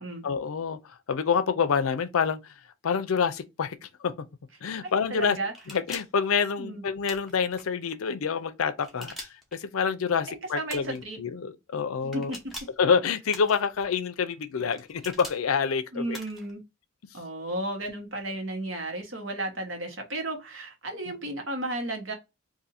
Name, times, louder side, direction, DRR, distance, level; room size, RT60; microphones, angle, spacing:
voice 1, 0.2-2.5 2.8-4.1 4.6-5.4 5.7-12.3 12.8-16.2, left 6 dB, 85° left, 0.5 m, -27 dB
voice 2, 4.8-5.5 6.6-6.8 10.3-11.2 12.0-12.4 15.9-16.6 17.1-22.1, right 1 dB, 60° right, 1.2 m, -34 dB
sound 1, 5.5-6.2 7.0-7.7 8.8-9.6 10.7-11.0 12.1-12.8 13.3-13.9 14.7-15.4 16.1-16.5, equal, ahead, 0.8 m, -43 dB
2.7 x 2.6 x 4.0 m
head